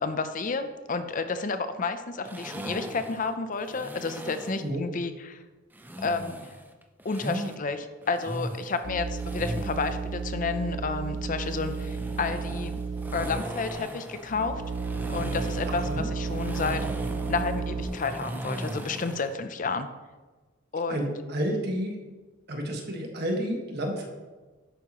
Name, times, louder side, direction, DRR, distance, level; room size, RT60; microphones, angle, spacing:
voice 1, 0.0-5.4 6.0-6.5 7.0-12.8 13.1-14.6 15.1-16.9 17.3-19.9 20.7-21.1, left 4 dB, 40° left, 9 dB, 0.6 m, -31 dB
sound 1, 2.2-4.6 5.7-7.6 8.0-10.0 11.4-19.3, right 1 dB, 10° right, 0.6 m, -38 dB
sound 2, 8.8-13.7 14.3-17.9, right 4 dB, 80° right, 1.3 m, -32 dB
voice 2, 15.7-16.1 20.9-22.0 22.5-24.1, equal, 55° right, 2 dB, 1.6 m, -30 dB
11.0 x 8.5 x 3.0 m, 1.3 s
head